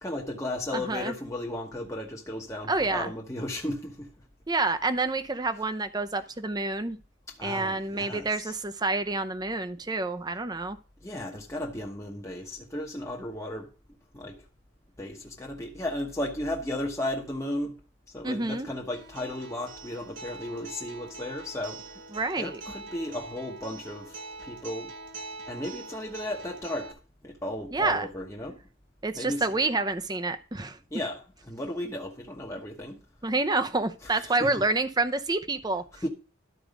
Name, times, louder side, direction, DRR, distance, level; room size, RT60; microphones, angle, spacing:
voice 1, 0.0-4.1 7.3-8.6 11.0-13.7 14.1-14.4 15.0-17.8 18.1-21.8 22.4-24.9 25.5-26.9 27.2-28.6 29.1-29.6 30.9-33.0 34.0-34.6 35.9-36.1, left 1 dB, 15° left, 1.1 m, -35 dB
voice 2, 0.7-1.1 2.7-3.1 4.5-7.0 7.4-10.8 18.2-18.7 22.1-22.6 27.7-28.1 29.0-30.8 33.2-35.8, right 3 dB, 20° right, 0.6 m, -28 dB
Acoustic guitar, 18.9-26.9, right 3 dB, 60° right, 1.7 m, -43 dB
12.5 x 4.7 x 5.1 m
head